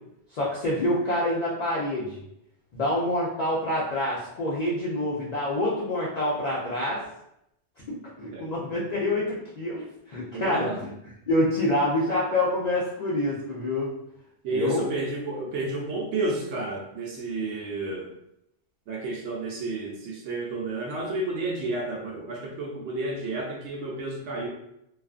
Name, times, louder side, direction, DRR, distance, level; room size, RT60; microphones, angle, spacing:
voice 1, 0.3-2.2 2.7-7.0 7.9-10.9 11.3-13.9 14.5-14.9, left 1 dB, 60° left, -6 dB, 0.4 m, -27 dB
voice 2, 10.3-10.8 14.4-18.1 18.9-24.5, right 2 dB, 70° right, -3 dB, 0.8 m, -31 dB
2.4 x 2.3 x 2.4 m, 0.79 s
omnidirectional pair, 1.3 m